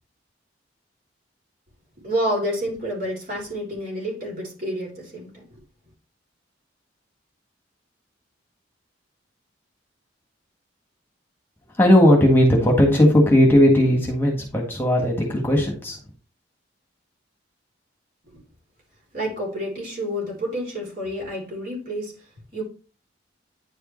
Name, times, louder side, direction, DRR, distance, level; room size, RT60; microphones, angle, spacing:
voice 1, 2.0-5.6 19.1-22.2 22.5-22.6, equal, 50° right, 3.5 m, -29 dB
voice 2, 11.8-16.0, equal, 10° left, 1.6 m, -17 dB
9.8 x 5.0 x 3.2 m
head